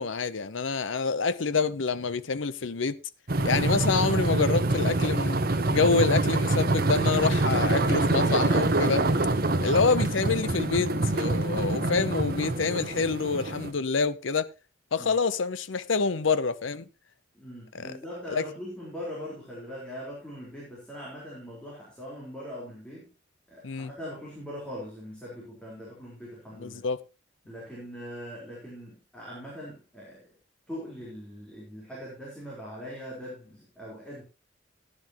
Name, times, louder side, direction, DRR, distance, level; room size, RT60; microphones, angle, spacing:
voice 1, 0.0-3.0 3.4-5.4 5.7-9.1 9.6-14.5 14.9-16.8 17.7-17.9 18.3-18.4 23.6-23.9 26.6-27.0, left 4 dB, 85° left, 0.7 m, -27 dB
sound 1, 3.3-13.7, right 2 dB, 50° right, 1.0 m, -25 dB
voice 2, 17.3-23.1 23.5-26.8 27.5-30.2 30.7-34.2, equal, 5° left, 4.1 m, -41 dB
15.5 x 10.0 x 3.0 m
head